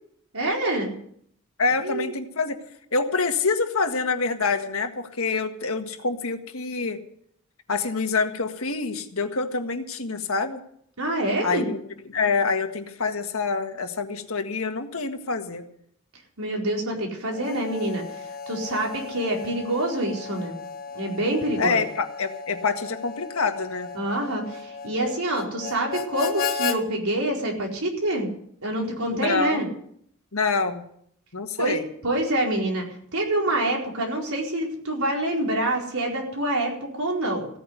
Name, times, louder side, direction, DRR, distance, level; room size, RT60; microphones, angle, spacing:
voice 1, 0.3-0.9 1.8-2.1 11.0-11.7 16.4-20.5 20.9-21.8 23.9-28.3 28.6-29.7 31.6-32.9 33.1-37.5, right 1 dB, 85° right, 0 dB, 4.6 m, -26 dB
voice 2, 1.6-2.6 2.9-7.0 7.7-10.6 11.4-11.8 12.1-15.6 21.6-23.9 29.1-29.7 30.3-30.8 31.3-31.9, left 4 dB, 75° left, 6 dB, 1.7 m, -26 dB
Harmonica, 17.3-26.8, left 6 dB, 45° left, 1.4 m, -35 dB
16.5 x 9.2 x 8.2 m, 0.67 s
head